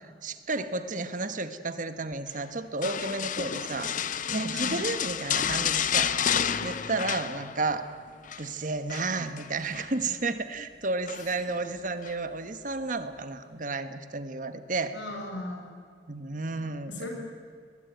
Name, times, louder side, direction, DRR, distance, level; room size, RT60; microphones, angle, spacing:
voice 1, 0.0-4.0 4.3-6.2 6.6-7.9 8.4-15.0 16.1-17.1, right 3 dB, 45° right, 10 dB, 1.4 m, -32 dB
sound 1, 2.8-7.8 8.1-8.5 8.9-9.9 11.1-11.5 12.0-12.2, left 8 dB, 45° left, 0.7 m, -30 dB
voice 2, 14.9-15.6 16.9-17.1, left 1 dB, 85° left, 2 dB, 6.5 m, -37 dB
23.5 x 20.0 x 9.3 m, 2.1 s
head